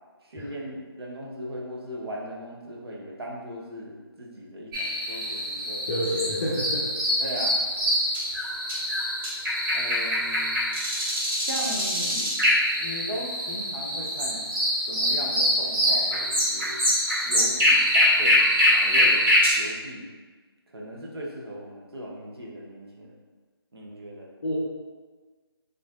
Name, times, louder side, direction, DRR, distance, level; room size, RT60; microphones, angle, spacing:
voice 1, 0.2-5.9 7.2-7.6 9.7-10.6 11.4-12.5 12.8-14.5 14.9-16.8 17.2-18.4 18.7-20.1 20.7-23.2 23.7-24.3, equal, 70° right, -3 dB, 0.7 m, -38 dB
sound 1, 4.7-19.5, left 1 dB, 55° right, 1.4 m, -24 dB
voice 2, 5.9-6.9 24.4-24.5, left 1 dB, 35° left, -8 dB, 0.6 m, -28 dB
2.9 x 2.5 x 2.3 m, 1.4 s
figure-of-eight pair, 155°, 13 cm